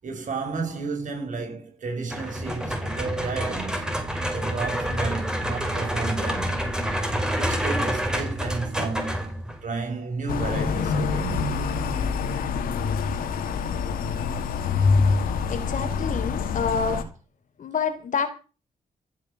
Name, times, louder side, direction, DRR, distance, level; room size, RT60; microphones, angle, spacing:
voice 1, 0.0-3.8 4.3-6.6 7.3-9.4 9.6-11.5 16.1-16.3, right 4 dB, 60° right, 7.9 m, -32 dB
sound 1, 2.1-9.7, equal, 5° right, 5.2 m, -28 dB
sound 2, 10.3-17.0, left 5 dB, 90° left, 2.4 m, -25 dB
voice 2, 15.5-17.0 17.6-18.3, left 5 dB, 65° left, 3.9 m, -27 dB
15.0 x 8.5 x 7.7 m
cardioid pair, 70°, 14 cm